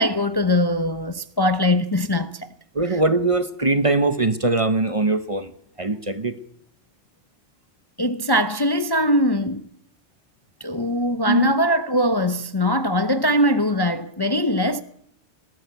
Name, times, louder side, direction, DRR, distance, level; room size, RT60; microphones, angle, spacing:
voice 1, 0.0-2.5 2.8-3.0 8.0-9.6 10.6-14.8, equal, 25° left, 0.7 m, -21 dB
voice 2, 2.7-5.5 5.8-6.4 11.3-11.5, right 3 dB, 30° right, 0.9 m, -21 dB
20.5 x 16.0 x 8.1 m
omnidirectional pair, 1.3 m